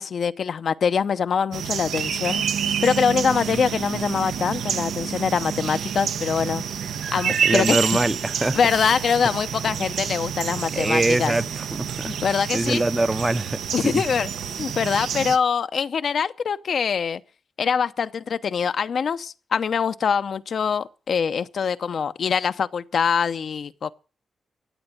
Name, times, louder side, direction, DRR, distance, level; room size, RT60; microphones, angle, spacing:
voice 1, 0.0-2.4 2.8-6.6 7.1-7.8 8.5-11.3 12.1-12.8 13.7-14.3 14.6-17.2 17.6-23.9, left 6 dB, 65° left, 0.6 m, -24 dB
sound 1, 1.5-15.4, right 8 dB, 90° right, 0.8 m, -28 dB
voice 2, 7.4-8.6 10.7-12.1 12.5-14.0, right 2 dB, 20° right, 0.6 m, -23 dB
14.5 x 8.8 x 7.3 m
cardioid pair, 80°, 0 cm